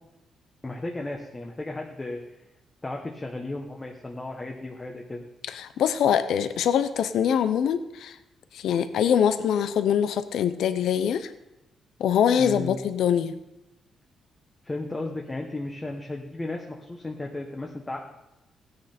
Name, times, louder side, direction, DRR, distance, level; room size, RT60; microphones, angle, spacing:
voice 1, 0.6-2.2 2.8-5.2 12.4-12.8 14.6-18.0, left 2 dB, 15° left, 1 dB, 1.0 m, -34 dB
voice 2, 5.5-8.2 8.5-11.3 12.0-13.3, left 8 dB, 75° left, 11 dB, 0.8 m, -23 dB
16.5 x 9.6 x 4.4 m, 0.93 s
cardioid pair, 170°, 0 cm